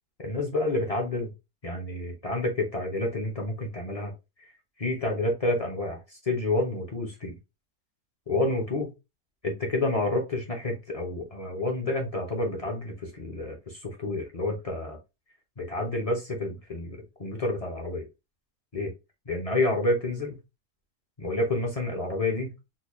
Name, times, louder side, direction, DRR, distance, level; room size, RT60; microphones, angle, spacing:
voice 1, 0.2-1.3 1.6-4.1 4.4-4.5 4.8-7.4 8.3-8.9 9.4-15.0 15.6-18.1 18.7-18.9 19.3-20.4 21.2-22.5, left 2 dB, 40° left, 0.5 m, -29 dB
4.0 x 2.3 x 3.0 m
omnidirectional pair, 1.7 m